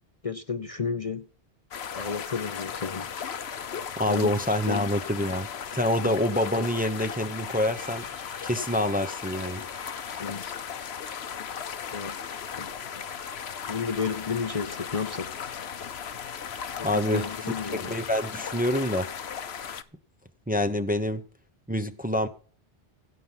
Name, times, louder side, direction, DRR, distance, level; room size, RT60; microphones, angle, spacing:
voice 1, 0.2-1.2 1.9-3.1 4.1-4.3 4.7-4.8 6.0-6.1 10.2-10.5 11.9-12.2 12.6-12.7 13.7-15.3 16.8-17.9, left 5 dB, 35° left, 0.7 m, -32 dB
sound 1, 1.7-19.8, left 7 dB, 80° left, 1.1 m, -36 dB
voice 2, 4.0-8.0 8.4-9.6 16.8-17.2 17.7-19.1 20.5-21.2 21.7-22.3, left 1 dB, 10° right, 0.8 m, -26 dB
sound 2, 7.6-10.4, right 2 dB, 55° right, 2.6 m, -50 dB
16.5 x 5.6 x 5.8 m
omnidirectional pair, 1.1 m